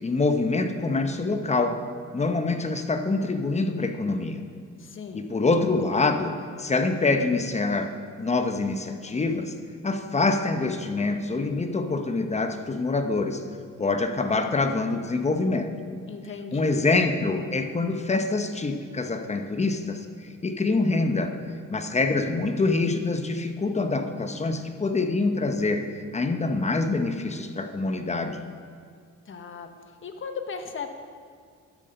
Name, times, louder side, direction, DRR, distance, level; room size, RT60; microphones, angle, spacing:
voice 1, 0.0-1.8 2.1-4.4 5.1-6.3 6.6-9.5 9.8-13.4 13.8-15.7 16.5-21.4 21.7-25.8 26.1-28.4, left 3 dB, 20° left, 7 dB, 0.9 m, -25 dB
voice 2, 4.8-5.3 16.1-16.9 29.3-29.7 30.0-30.9, left 5 dB, 45° left, 6 dB, 1.1 m, -37 dB
12.5 x 7.6 x 5.3 m, 2.1 s
cardioid pair, 90°, 30 cm